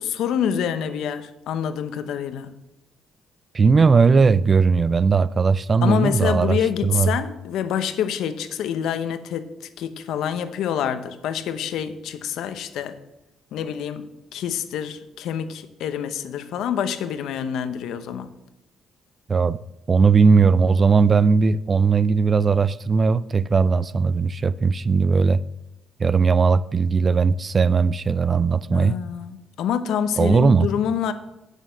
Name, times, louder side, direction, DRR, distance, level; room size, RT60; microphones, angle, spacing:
voice 1, 0.0-2.5 5.8-13.0 13.5-18.3 28.7-31.1, left 8 dB, 80° left, 0.8 m, -27 dB
voice 2, 3.5-7.1 19.3-19.6 19.9-25.4 26.0-29.0 30.2-30.7, right 5 dB, 35° right, 0.4 m, -18 dB
9.2 x 6.5 x 6.4 m
cardioid pair, 90°, 0 cm